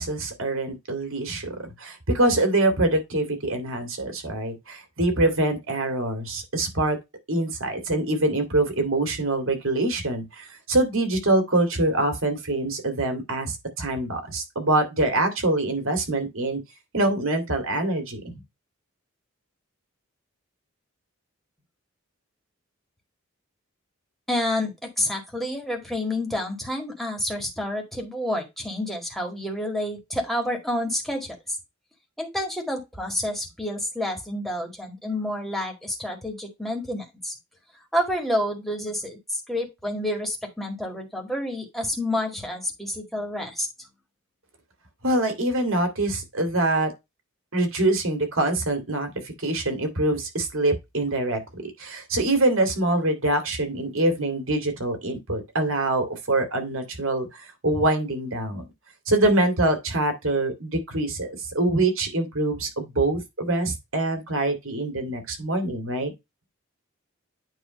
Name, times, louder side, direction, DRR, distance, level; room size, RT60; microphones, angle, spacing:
voice 1, 0.0-7.0 7.3-16.6 16.9-18.4 45.0-46.9 47.5-58.7 59.1-66.1, right 2 dB, 75° right, 2.4 m, -24 dB
voice 2, 24.3-31.4 32.2-37.3 37.9-43.7, left 1 dB, ahead, 1.8 m, -29 dB
9.1 x 3.1 x 5.2 m
head